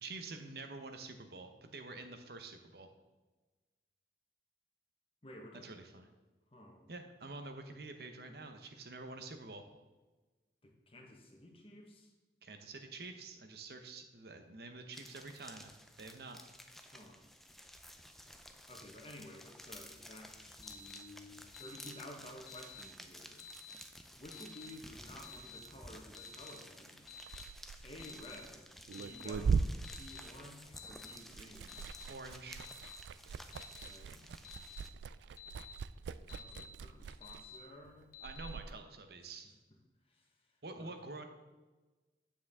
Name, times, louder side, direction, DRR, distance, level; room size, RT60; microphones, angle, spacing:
voice 1, 0.0-2.9 5.6-6.1 6.9-9.6 12.4-15.7 16.0-16.4 32.1-32.6 38.2-39.5 40.6-41.2, right 3 dB, 60° right, 6 dB, 0.8 m, -47 dB
voice 2, 5.2-5.7 6.5-6.8 10.6-12.1 16.8-17.2 18.7-23.4 24.2-27.1 27.8-28.6 29.0-31.8 33.4-34.4 36.3-38.1 40.1-40.3 40.8-40.9, left 1 dB, 30° left, 2 dB, 1.2 m, -53 dB
sound 1, 14.9-34.9, equal, ahead, 0.4 m, -54 dB
Alarm, 20.6-21.0 21.5-21.9 22.5-22.8 23.4-23.7 24.3-24.7 25.2-25.6 26.2-26.5 27.1-27.4 28.0-28.4 28.9-29.3 29.8-30.2 30.8-31.1 31.7-32.0 32.6-33.0 33.5-33.9 34.4-34.8 35.4-35.7 36.3-36.7 37.2-37.6 38.1-38.5, left 8 dB, 55° left, 1.1 m, -51 dB
Liquid, 27.2-30.9 31.2-38.7, right 5 dB, 80° right, 0.3 m, -40 dB
9.0 x 7.2 x 3.6 m, 1.2 s
head